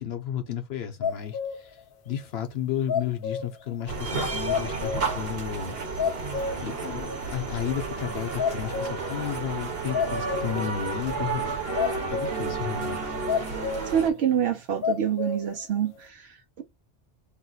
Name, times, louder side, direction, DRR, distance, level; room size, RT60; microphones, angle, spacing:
voice 1, 0.0-1.8 2.0-6.3 6.6-11.6 12.1-13.1, left 9 dB, 80° left, 1.1 m, -33 dB
sound 1, 1.0-1.8 2.1-2.2 2.9-3.7 4.1-4.2 4.5-5.3 5.6-5.7 6.0-6.8 7.1-7.2 8.0-8.1 8.4-9.2 9.9-10.7 11.8-12.5 13.3-14.0 14.4-14.5 14.8-15.5 16.0-16.1, left 6 dB, 65° left, 0.8 m, -30 dB
sound 2, 3.9-14.1, right 4 dB, 70° right, 1.2 m, -31 dB
voice 2, 13.9-16.6, right 9 dB, 90° right, 0.9 m, -27 dB
3.1 x 3.0 x 4.0 m
omnidirectional pair, 1.0 m